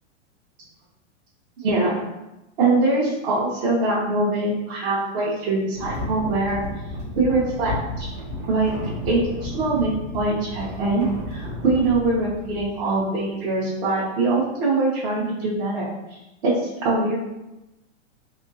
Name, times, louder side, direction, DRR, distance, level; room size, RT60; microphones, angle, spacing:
voice 1, 1.6-2.0 2.6-6.6 7.1-8.1 8.5-8.7 9.0-15.9 16.4-17.2, right 2 dB, 55° right, -7 dB, 1.2 m, -23 dB
sound 1, 5.7-13.2, left 1 dB, 70° right, 1.4 m, -33 dB
3.5 x 3.1 x 2.7 m, 0.98 s
hypercardioid pair, 125°, 36 cm